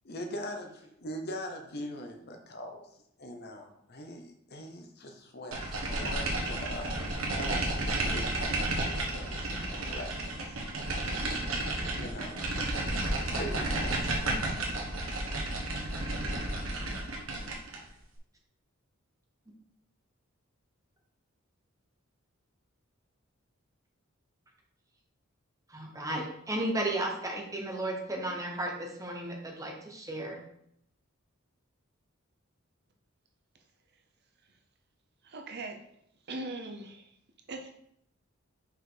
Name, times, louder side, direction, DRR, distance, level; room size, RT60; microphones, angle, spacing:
voice 1, 0.0-2.9 3.2-10.1 10.5-10.6 11.9-12.5 13.4-14.1, equal, 50° left, 4 dB, 0.9 m, -42 dB
sound 1, 5.5-17.9, right 1 dB, 80° right, 1.3 m, -32 dB
voice 2, 25.7-30.4, right 1 dB, 15° right, 1 dB, 1.1 m, -34 dB
voice 3, 35.2-35.8 36.3-37.1 37.5-37.7, right 2 dB, 50° right, 4 dB, 0.7 m, -40 dB
5.6 x 4.6 x 3.8 m, 0.72 s
head